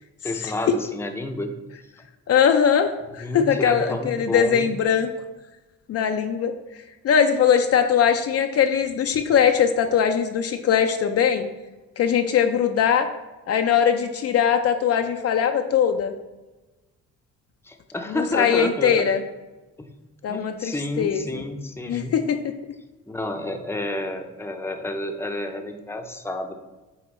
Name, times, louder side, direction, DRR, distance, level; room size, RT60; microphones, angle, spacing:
voice 1, 0.2-1.6 3.2-4.7 17.6-19.0 19.8-19.9 20.3-22.2 23.1-26.5, left 1 dB, 10° left, 5 dB, 0.6 m, -30 dB
voice 2, 2.3-5.1 5.9-6.5 7.0-11.5 12.0-13.1 13.5-16.1 18.1-19.2 20.2-21.4 21.9-22.4, left 7 dB, 55° left, 7 dB, 0.5 m, -21 dB
7.7 x 2.9 x 4.2 m, 1.1 s
cardioid pair, 90°, 30 cm